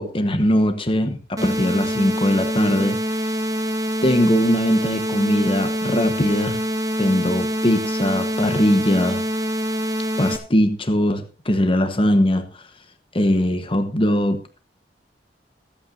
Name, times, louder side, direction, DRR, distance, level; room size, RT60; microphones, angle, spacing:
voice 1, 0.0-3.4 4.0-6.6 7.0-9.2 10.2-12.6 13.1-14.6, equal, 30° left, 1.1 m, -20 dB
sound 1, 1.4-10.4, equal, 20° right, 1.6 m, -25 dB
23.0 x 8.8 x 2.6 m
head